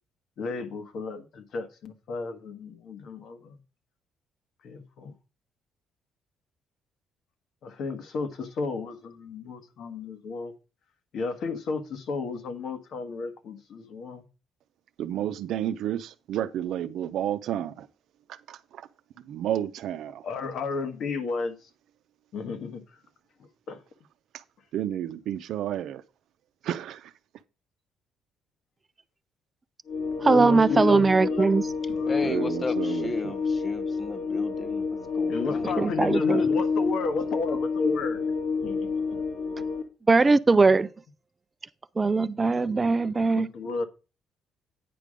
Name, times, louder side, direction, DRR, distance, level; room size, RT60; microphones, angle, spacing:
voice 1, 0.4-3.6 4.6-5.1 7.6-8.9 9.2-10.5 11.1-14.2 20.2-21.7 22.3-22.8 23.7-23.8 30.1-31.5 31.9-32.6 35.3-38.2 38.6-38.9 43.3-43.8, left 4 dB, 65° left, 1.4 m, -33 dB
voice 2, 15.0-17.9 18.3-18.9 19.3-20.3 24.3-24.4 24.7-26.0 26.6-27.1 32.2-33.3, right 11 dB, 70° right, 0.6 m, -31 dB
sound 1, 29.9-39.8, left 4 dB, 80° left, 2.3 m, -28 dB
voice 3, 30.2-31.6 35.8-36.4 40.1-40.9 42.0-43.5, right 3 dB, 25° right, 0.3 m, -20 dB
voice 4, 32.1-34.8 35.1-35.8, left 3 dB, 25° left, 0.7 m, -35 dB
9.4 x 5.3 x 5.0 m
cardioid pair, 115°, 0 cm